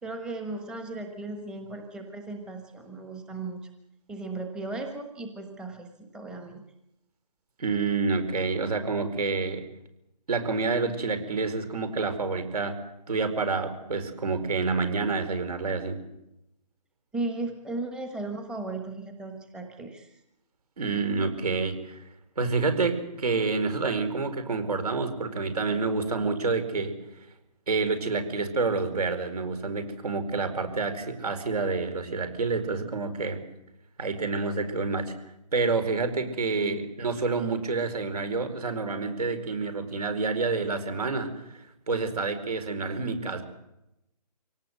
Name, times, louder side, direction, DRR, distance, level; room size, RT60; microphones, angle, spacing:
voice 1, 0.0-3.7 4.1-6.6 17.1-20.1 36.6-36.8, right 2 dB, 5° right, 4 dB, 1.2 m, -36 dB
voice 2, 7.6-9.6 10.3-12.8 13.1-16.0 20.8-22.0 22.4-26.9 27.7-33.4 34.0-35.1 35.5-41.6 41.9-43.4, right 4 dB, 65° right, 9 dB, 4.7 m, -28 dB
25.0 x 18.0 x 8.0 m, 0.86 s
hypercardioid pair, 160°, 21 cm